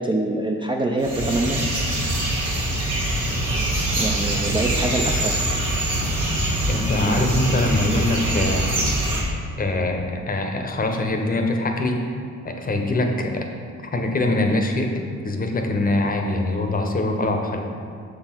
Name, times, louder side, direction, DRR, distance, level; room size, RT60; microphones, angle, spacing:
voice 1, 0.0-1.7 4.0-5.5 7.0-7.2, right 2 dB, 15° right, 0 dB, 0.4 m, -25 dB
sound 1, 1.0-9.2, right 1 dB, 85° right, 1.4 m, -23 dB
voice 2, 2.4-2.9 6.7-8.7 9.6-12.0 12.4-13.5 13.9-14.9 15.2-17.7, left 2 dB, 30° left, 3 dB, 0.7 m, -23 dB
6.5 x 3.8 x 4.5 m, 2.3 s
cardioid pair, 90°, 30 cm